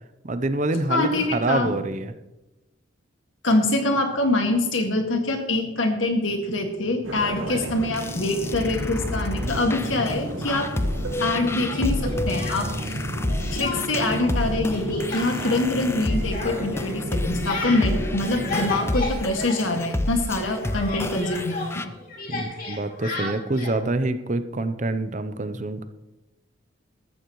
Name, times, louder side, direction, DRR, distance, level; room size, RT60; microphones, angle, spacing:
voice 1, 0.2-2.1 9.4-10.0 22.3-25.9, right 2 dB, 40° right, 11 dB, 0.6 m, -26 dB
voice 2, 0.9-1.7 3.4-10.7 11.2-13.0 13.5-21.9, left 2 dB, 80° left, 4 dB, 2.0 m, -24 dB
sound 1, 7.0-18.9, equal, 80° right, 1.6 m, -33 dB
sound 2, 7.7-21.8, left 1 dB, 15° left, 0.4 m, -30 dB
Speech, 11.7-13.0 13.3-14.2 14.4-20.1 20.4-23.8, left 2 dB, 45° left, 2.6 m, -34 dB
14.0 x 13.5 x 3.1 m, 1.0 s
head